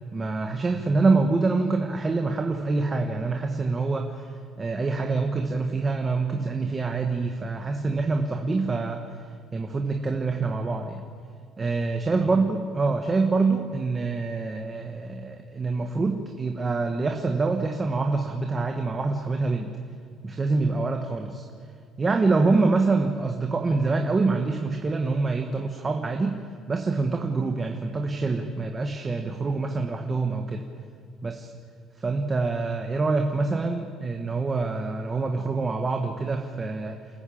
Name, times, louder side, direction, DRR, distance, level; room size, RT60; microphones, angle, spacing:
voice 1, 0.1-9.3 9.5-11.0 11.6-19.7 20.2-21.4 22.0-26.4 26.7-30.7 31.2-31.5 32.0-37.0, right 3 dB, 20° right, 4 dB, 1.4 m, -26 dB
28.5 x 14.5 x 8.7 m, 2.2 s
cardioid pair, 145°, 0 cm